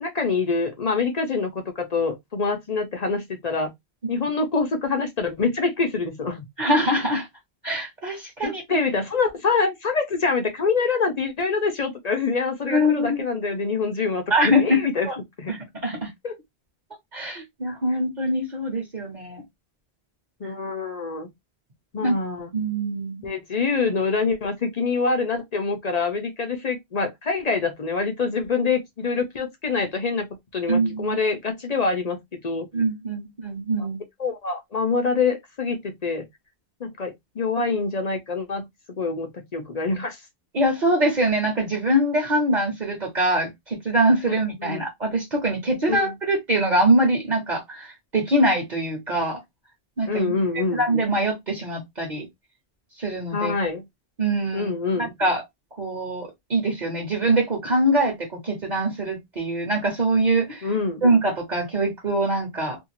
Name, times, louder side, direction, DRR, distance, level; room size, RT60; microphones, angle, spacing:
voice 1, 0.0-3.7 4.1-6.5 8.4-15.1 15.4-15.5 16.2-16.4 20.4-21.3 21.9-22.5 23.2-30.3 30.5-32.2 32.4-32.7 34.2-36.3 36.8-40.2 44.6-44.8 45.9-46.1 50.1-50.8 53.3-53.8 54.5-55.1 60.6-61.1, left 4 dB, 45° left, 0.6 m, -25 dB
voice 2, 6.6-7.3 7.6-8.8 12.7-13.2 14.3-14.8 15.0-15.2 15.5-16.1 17.1-19.4 22.0-22.1 22.5-23.2 30.7-31.2 32.7-34.0 40.5-49.4 50.0-52.3 53.0-53.6 54.2-55.4 55.8-60.7 61.0-62.8, right 1 dB, 45° right, 1.0 m, -23 dB
2.6 x 2.4 x 2.8 m
omnidirectional pair, 1.1 m